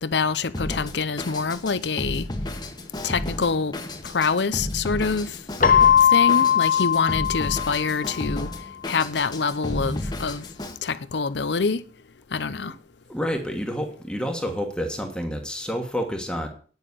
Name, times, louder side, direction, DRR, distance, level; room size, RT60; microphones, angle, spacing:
voice 1, 0.0-2.3 3.0-3.7 4.0-5.4 6.1-8.5 8.9-10.5 10.8-11.8 12.3-12.7, left 5 dB, 80° left, 0.7 m, -25 dB
Drum kit, 0.5-10.8, left 1 dB, 25° left, 1.2 m, -33 dB
Keyboard (musical), 5.6-8.3, left 8 dB, 45° left, 0.7 m, -19 dB
voice 2, 13.1-16.5, equal, 5° left, 1.3 m, -29 dB
9.7 x 6.1 x 7.9 m
head